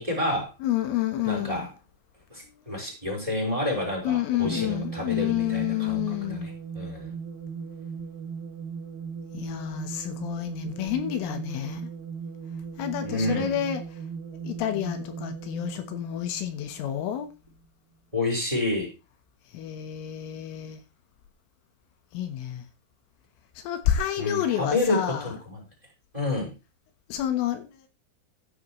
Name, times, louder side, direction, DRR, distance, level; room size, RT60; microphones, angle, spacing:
voice 1, 0.0-0.5 1.2-1.7 2.3-6.0 6.3-7.1 13.0-13.5 18.1-18.9 24.2-25.6 26.1-26.5, left 2 dB, 5° right, 4.9 m, -29 dB
voice 2, 0.6-1.7 4.1-6.5 9.3-11.9 12.8-13.8 14.4-17.3 19.5-20.8 22.1-22.6 23.6-25.3 27.1-27.7, left 11 dB, 80° left, 3.8 m, -29 dB
sound 1, 4.4-17.3, right 6 dB, 90° right, 4.9 m, -38 dB
13.5 x 9.4 x 3.1 m
omnidirectional pair, 5.9 m